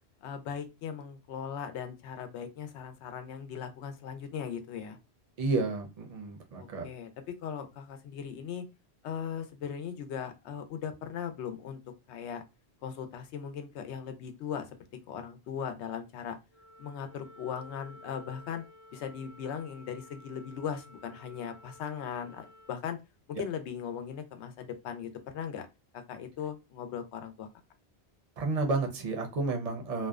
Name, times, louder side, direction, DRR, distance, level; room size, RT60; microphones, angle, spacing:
voice 1, 0.2-5.0 6.6-8.7 9.0-11.8 12.1-12.4 12.8-14.7 15.1-16.4 16.8-18.6 18.9-23.0 23.4-25.7 25.9-27.5, left 7 dB, 85° left, 7 dB, 0.9 m, -38 dB
voice 2, 5.4-6.9 28.4-30.1, right 3 dB, 45° right, 3 dB, 0.6 m, -31 dB
Wind instrument woodwind instrument, 16.5-22.8, left 1 dB, 80° right, 0.9 m, -53 dB
2.6 x 2.1 x 2.3 m, 0.25 s
omnidirectional pair, 1.1 m